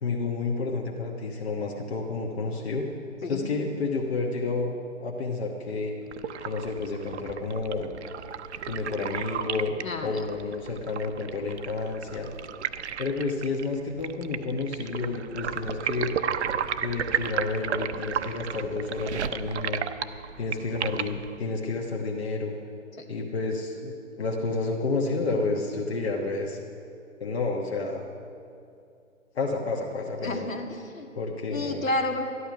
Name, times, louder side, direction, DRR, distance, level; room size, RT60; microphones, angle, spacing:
voice 1, 0.0-2.9 3.3-4.7 5.0-5.9 6.4-7.9 8.7-12.3 13.0-16.1 16.8-19.8 20.4-22.6 23.1-26.6 27.2-28.0 29.3-30.5 31.1-31.9, left 3 dB, 50° left, 0 dB, 1.3 m, -30 dB
voice 2, 3.2-3.5 9.8-10.2 23.0-23.1 30.2-31.1 31.5-32.3, left 2 dB, 80° left, 4 dB, 1.8 m, -31 dB
sound 1, 6.1-21.4, right 8 dB, 55° right, 0.7 m, -33 dB
13.0 x 11.5 x 5.9 m, 2.5 s
figure-of-eight pair, 135°, 40 cm